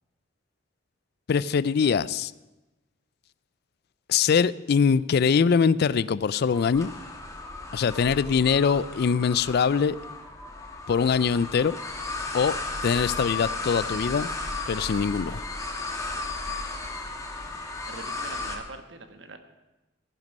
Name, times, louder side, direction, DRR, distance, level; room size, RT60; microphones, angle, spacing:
voice 1, 1.3-2.3 4.1-6.9 7.7-10.0 10.9-11.8 12.3-14.3 14.7-15.4, left 6 dB, 55° left, 19 dB, 0.4 m, -23 dB
sound 1, 6.5-18.6, left 3 dB, 15° left, 1.5 m, -34 dB
voice 2, 17.9-19.4, right 3 dB, 70° right, 8 dB, 1.3 m, -43 dB
15.0 x 10.5 x 5.4 m, 1.0 s
head